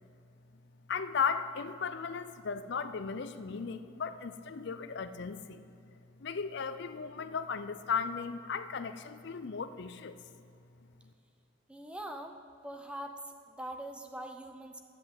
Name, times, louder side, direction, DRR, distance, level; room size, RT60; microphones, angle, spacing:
voice 1, 0.9-5.6 6.2-10.2, left 6 dB, 55° left, 11 dB, 0.5 m, -36 dB
voice 2, 11.7-12.4 12.6-14.8, right 1 dB, 5° right, 5 dB, 0.6 m, -43 dB
11.0 x 7.6 x 8.0 m, 2.6 s
head